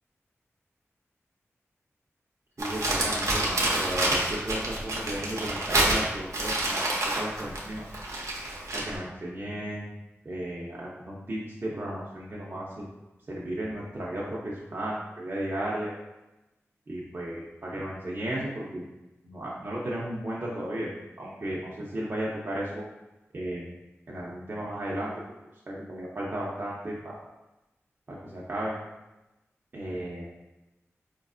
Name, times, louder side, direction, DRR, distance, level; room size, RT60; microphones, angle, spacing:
voice 1, 2.6-6.9 7.2-7.9 8.7-9.9 10.2-12.9 13.3-15.9 16.9-18.8 19.2-20.9 21.2-22.8 23.3-23.7 24.1-25.1 25.7-27.1 28.1-28.8 29.7-30.3, right 1 dB, 45° right, -6 dB, 0.6 m, -34 dB
Crumpling crinkling, 2.6-9.0, right 1 dB, 85° right, 0.7 m, -28 dB
4.4 x 2.5 x 2.4 m, 0.99 s
wide cardioid pair, 80°, 5 cm